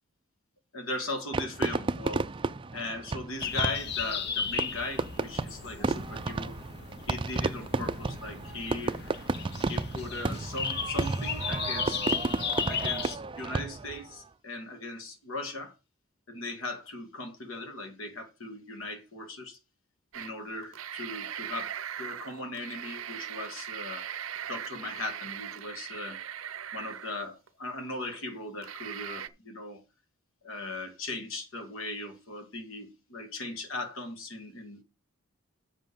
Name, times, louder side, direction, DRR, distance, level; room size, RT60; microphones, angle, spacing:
voice 1, 0.7-2.3 2.7-6.6 7.1-9.0 9.7-12.0 12.7-15.7 16.3-19.6 20.1-24.1 24.5-26.2 26.7-29.8 30.4-34.8, left 2 dB, 70° left, 2.1 m, -38 dB
Fireworks, 1.3-14.0, right 3 dB, 25° right, 0.4 m, -32 dB
sound 1, 3.4-13.2, left 7 dB, 55° left, 0.8 m, -35 dB
sound 2, 20.1-20.3 20.6-27.5 28.0-28.1 28.6-29.3, right 9 dB, 65° right, 0.6 m, -39 dB
7.6 x 6.2 x 5.3 m
head